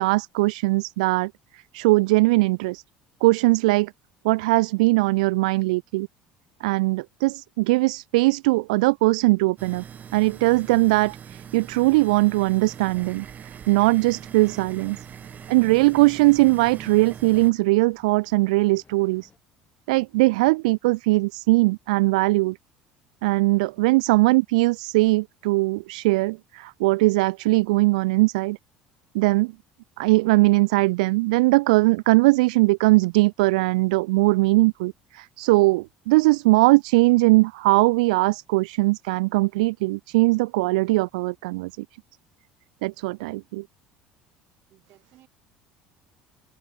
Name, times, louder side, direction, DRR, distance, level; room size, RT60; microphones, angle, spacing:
voice 1, 0.0-2.8 3.2-3.9 4.2-6.1 6.6-9.8 10.1-15.0 15.5-19.3 19.9-22.6 23.2-28.6 29.1-29.5 30.0-41.9 42.8-43.7, right 23 dB, 80° right, 0.4 m, -20 dB
sound 1, 9.6-17.5, right 8 dB, 40° right, 1.5 m, -42 dB
Boat Water vehicle, 14.0-19.4, left 5 dB, 30° left, 7.8 m, -58 dB
voice 2, 44.7-45.3, right 14 dB, 60° right, 7.8 m, -58 dB
hypercardioid pair, 70°, 4 cm